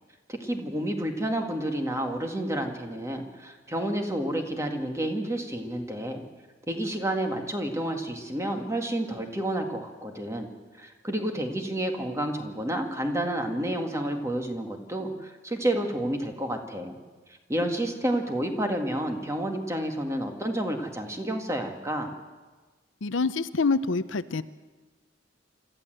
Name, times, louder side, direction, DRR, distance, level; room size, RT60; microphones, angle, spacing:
voice 1, 0.3-6.2 6.7-10.5 10.7-17.0 17.5-22.1, right 1 dB, 15° right, 4 dB, 2.0 m, -30 dB
voice 2, 23.0-24.4, left 4 dB, 90° left, 14 dB, 0.7 m, -26 dB
25.5 x 13.5 x 7.8 m, 1.3 s
head